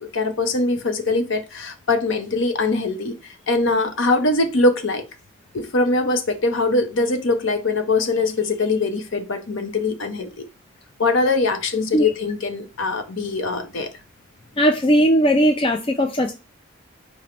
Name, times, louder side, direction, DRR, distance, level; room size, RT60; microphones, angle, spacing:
voice 1, 0.1-5.0 5.5-10.4 11.0-13.9, left 3 dB, 65° left, 0.7 m, -22 dB
voice 2, 14.6-16.3, equal, 25° left, 0.3 m, -18 dB
5.0 x 2.1 x 4.3 m
head